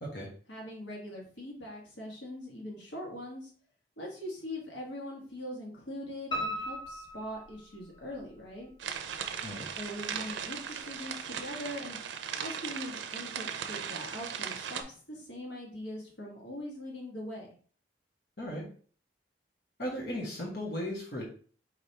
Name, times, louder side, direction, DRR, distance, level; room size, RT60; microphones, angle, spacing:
voice 1, 0.5-3.5 4.0-8.7 9.7-12.0 12.4-17.5, left 1 dB, 90° left, -2 dB, 1.4 m, -42 dB
Piano, 6.3-8.2 8.6-9.5 9.8-9.9 10.4-10.5 10.7-10.8, equal, 25° left, 1.2 m, -38 dB
sound 1, 8.8-14.8, right 7 dB, 85° right, 0.5 m, -38 dB
voice 2, 19.8-21.3, equal, 60° left, -3 dB, 1.2 m, -36 dB
4.7 x 3.4 x 2.8 m, 0.43 s
head